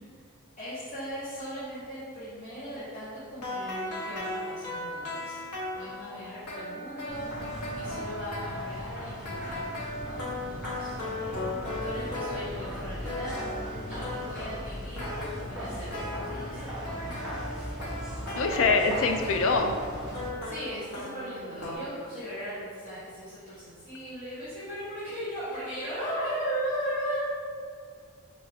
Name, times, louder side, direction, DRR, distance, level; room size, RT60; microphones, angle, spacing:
voice 1, 0.6-5.4 5.7-7.2 7.8-9.7 10.1-10.9 11.8-13.3 13.9-15.1 15.5-16.6 16.9-17.7 18.1-18.5 20.0-27.2, equal, 30° left, -13 dB, 0.9 m, -38 dB
sound 1, 3.3-12.8 13.0-14.5 14.9-16.3 16.8-21.8, left 1 dB, 90° left, 0.8 m, -37 dB
sound 2, 7.1-20.3, equal, ahead, 0.8 m, -38 dB
voice 2, 18.3-19.8, left 4 dB, 60° left, 5 dB, 0.3 m, -24 dB
3.8 x 2.3 x 3.4 m, 2.1 s
head